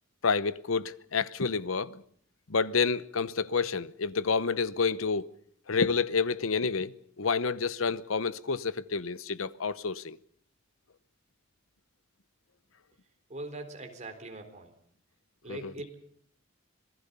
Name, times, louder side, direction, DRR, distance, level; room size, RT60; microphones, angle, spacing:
voice 1, 0.2-2.0 2.5-5.3 5.7-6.9 7.2-10.2 15.5-15.7, left 5 dB, 85° left, 0.9 m, -29 dB
voice 2, 13.3-14.7 15.4-16.1, right 2 dB, 35° right, 3.8 m, -42 dB
26.5 x 18.5 x 6.9 m
head